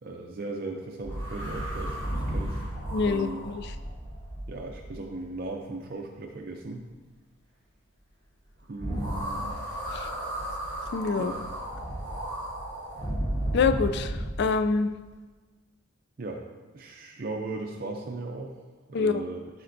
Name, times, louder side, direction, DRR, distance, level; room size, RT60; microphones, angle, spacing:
voice 1, 0.0-2.6 3.0-3.4 4.5-6.9 8.7-9.6 11.1-11.4 16.2-16.4 16.7-18.5 18.9-19.4, right 2 dB, 45° right, 1 dB, 0.5 m, -37 dB
sound 1, 1.0-5.3 8.8-14.4, right 1 dB, 20° left, 1.6 m, -33 dB
voice 2, 2.9-3.7 9.9-10.1 10.9-11.3 13.5-14.9 18.9-19.1, left 4 dB, 50° left, 9 dB, 0.3 m, -26 dB
12.5 x 4.3 x 2.6 m, 1.3 s
head